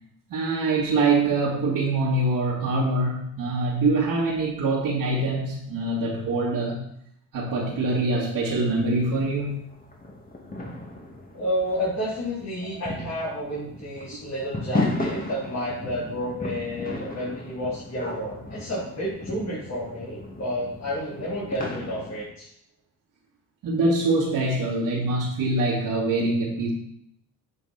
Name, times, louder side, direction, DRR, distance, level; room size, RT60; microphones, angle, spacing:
voice 1, 0.3-6.8 7.3-9.6 18.2-18.3 23.6-26.7, right 2 dB, 70° right, -8 dB, 2.3 m, -24 dB
sound 1, 8.4-22.3, left 2 dB, 25° left, 2.2 m, -35 dB
voice 2, 11.3-22.5, equal, 45° left, -8 dB, 3.7 m, -30 dB
8.9 x 5.7 x 4.3 m, 0.72 s
supercardioid pair, 70°, 36 cm